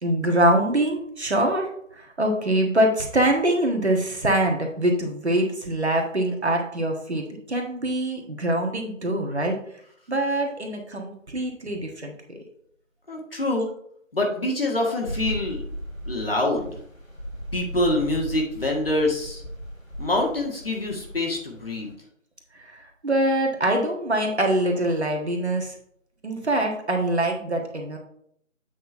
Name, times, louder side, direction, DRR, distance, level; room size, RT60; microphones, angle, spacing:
voice 1, 0.0-1.7 1.9-9.6 10.1-12.4 22.5-25.8 26.2-28.0, right 1 dB, 55° right, 2 dB, 1.7 m, -24 dB
voice 2, 13.1-13.7 14.1-15.6 16.1-16.8 17.5-19.4 20.0-21.9, left 1 dB, 45° left, 0 dB, 1.8 m, -25 dB
sound 1, 15.1-21.9, equal, 85° left, 2.6 m, -37 dB
8.2 x 4.3 x 4.4 m, 0.67 s
figure-of-eight pair, 165°, 40 cm